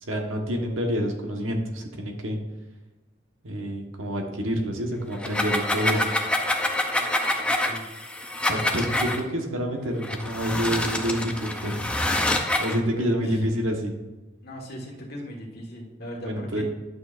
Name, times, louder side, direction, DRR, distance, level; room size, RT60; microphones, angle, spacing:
voice 1, 0.0-2.4 3.4-6.1 8.5-11.9 12.6-14.0 16.2-16.6, equal, 85° right, 2 dB, 1.4 m, -28 dB
sound 1, 5.1-9.2 10.0-12.8, left 1 dB, 5° left, 0.6 m, -26 dB
voice 2, 7.4-7.8 8.6-8.7 12.9-13.3 14.4-16.6, equal, 50° left, -1 dB, 1.6 m, -39 dB
11.0 x 6.5 x 2.6 m, 1.1 s
head